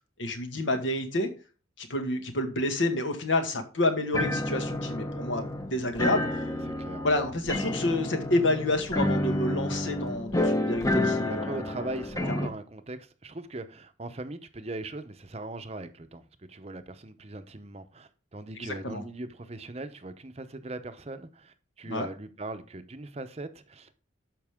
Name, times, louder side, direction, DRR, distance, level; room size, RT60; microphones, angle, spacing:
voice 1, 0.2-1.3 1.8-6.4 7.0-11.6 12.3-12.4 18.6-19.0 21.9-22.1, left 1 dB, 75° left, 1.9 m, -29 dB
sound 1, 4.1-12.5, left 1 dB, 15° left, 0.8 m, -30 dB
voice 2, 6.6-7.1 11.3-23.9, right 2 dB, 30° right, 0.7 m, -40 dB
12.5 x 5.4 x 3.6 m
head